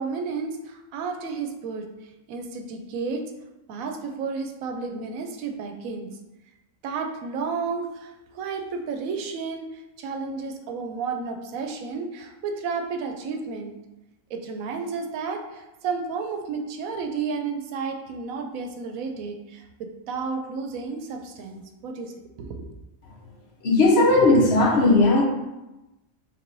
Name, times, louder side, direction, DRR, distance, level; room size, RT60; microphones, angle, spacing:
voice 1, 0.0-1.9 2.3-3.2 3.7-6.1 6.8-13.7 14.3-22.7, right 5 dB, 90° right, 4 dB, 1.0 m, -32 dB
voice 2, 23.6-25.2, left 2 dB, 55° left, -1 dB, 0.9 m, -17 dB
3.4 x 3.0 x 3.9 m, 0.99 s
omnidirectional pair, 1.4 m